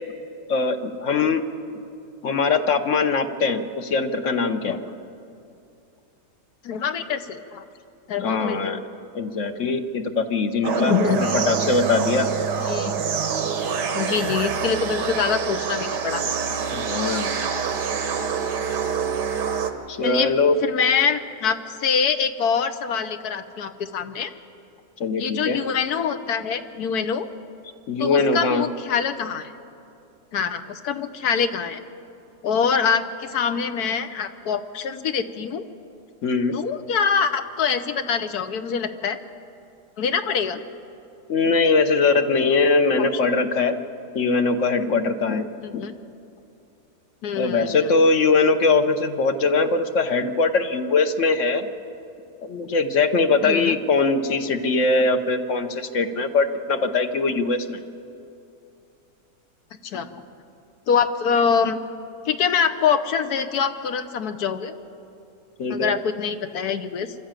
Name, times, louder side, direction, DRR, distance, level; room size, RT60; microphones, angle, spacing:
voice 1, 0.5-1.4 2.2-4.8 8.2-8.8 9.1-12.3 16.7-17.3 19.9-20.6 25.0-25.6 27.9-28.6 36.2-36.6 41.3-43.7 44.1-45.5 45.7-45.8 47.4-51.7 52.4-57.8 65.6-65.9, left 4 dB, 55° left, 9 dB, 1.1 m, -21 dB
voice 2, 6.6-7.6 8.1-8.7 10.7-11.4 12.7-12.9 13.9-16.2 20.0-20.3 20.5-24.3 25.2-27.3 28.0-29.5 30.3-31.8 32.4-35.7 36.5-39.2 40.0-40.6 45.6-45.9 47.2-47.9 53.4-53.8 59.8-60.2 60.9-61.8 62.2-64.7 65.7-67.1, left 6 dB, 70° left, 9 dB, 1.3 m, -24 dB
sound 1, 10.6-19.7, right 6 dB, 85° right, 1.8 m, -26 dB
24.5 x 13.0 x 8.9 m, 2.7 s
omnidirectional pair, 1.7 m